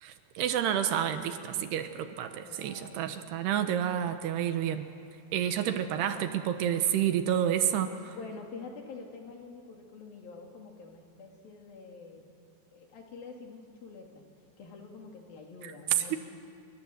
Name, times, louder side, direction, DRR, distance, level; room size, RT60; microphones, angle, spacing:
voice 1, 0.0-4.9 5.3-8.2 15.6-16.2, right 10 dB, 75° right, 8 dB, 3.0 m, -29 dB
voice 2, 2.4-3.5 5.8-6.6 8.1-12.4 12.7-14.3 14.6-16.2, left 4 dB, 60° left, 1 dB, 4.1 m, -47 dB
28.0 x 23.5 x 7.8 m, 2.7 s
omnidirectional pair, 5.0 m